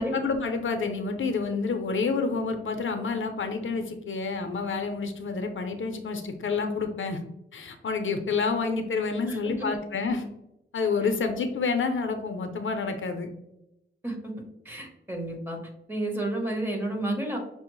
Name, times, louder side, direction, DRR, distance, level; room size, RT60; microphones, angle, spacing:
voice 1, 0.0-7.2 7.5-10.3 10.7-13.3, left 4 dB, 70° left, 6 dB, 0.5 m, -28 dB
voice 2, 9.3-9.7 14.0-14.3 14.6-15.6 15.9-17.4, right 1 dB, 10° right, 1 dB, 0.9 m, -31 dB
5.7 x 2.0 x 3.0 m, 0.85 s
wide cardioid pair, 90°, 21 cm